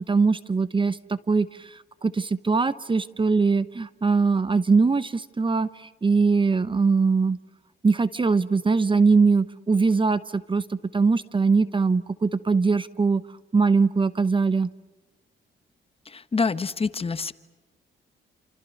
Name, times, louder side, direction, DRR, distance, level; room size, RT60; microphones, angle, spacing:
voice 1, 0.1-7.4 7.8-13.2 13.5-14.7, right 4 dB, 25° right, 15 dB, 0.9 m, -22 dB
voice 2, 16.1-17.3, left 4 dB, 30° left, 13 dB, 1.2 m, -26 dB
29.0 x 28.0 x 6.5 m, 1.2 s
cardioid pair, 90°, 20 cm